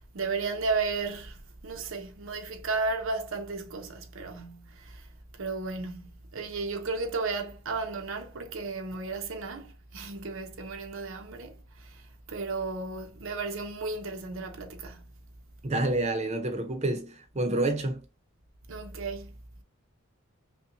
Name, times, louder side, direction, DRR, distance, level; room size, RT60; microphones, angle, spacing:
voice 1, 0.1-5.0 5.4-12.0 12.3-15.1 18.7-19.3, right 3 dB, 65° right, 0.7 m, -34 dB
voice 2, 15.6-18.0, right 2 dB, 30° right, 0.6 m, -28 dB
5.5 x 2.2 x 2.6 m
head